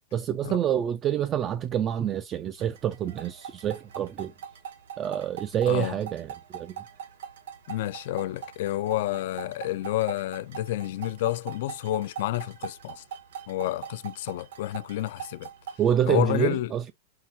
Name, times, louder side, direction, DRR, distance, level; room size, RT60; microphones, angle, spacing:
voice 1, 0.1-4.3 5.0-6.7 15.8-16.9, right 10 dB, 25° right, 0.3 m, -27 dB
sound 1, 2.6-15.8, right 8 dB, 85° right, 1.5 m, -42 dB
voice 2, 5.7-6.0 7.7-13.0 13.5-15.5 16.1-16.7, left 15 dB, 60° left, 0.4 m, -29 dB
5.7 x 2.3 x 2.7 m
supercardioid pair, 155°, 0 cm